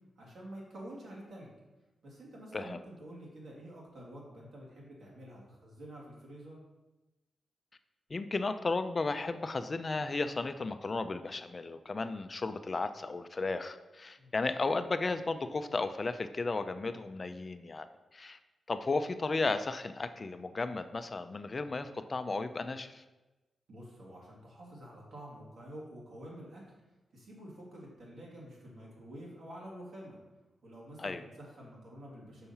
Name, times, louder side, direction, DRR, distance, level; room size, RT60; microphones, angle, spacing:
voice 1, 0.2-1.5 2.0-6.6 14.2-14.3 23.7-26.6 27.1-30.2 30.6-32.5, right 1 dB, 75° right, -4 dB, 2.2 m, -48 dB
voice 2, 8.1-17.9 18.1-18.4 18.7-23.0 31.0-31.2, left 3 dB, 40° left, 10 dB, 0.4 m, -34 dB
5.6 x 4.2 x 5.6 m, 1.1 s
cardioid pair, 75°, 0 cm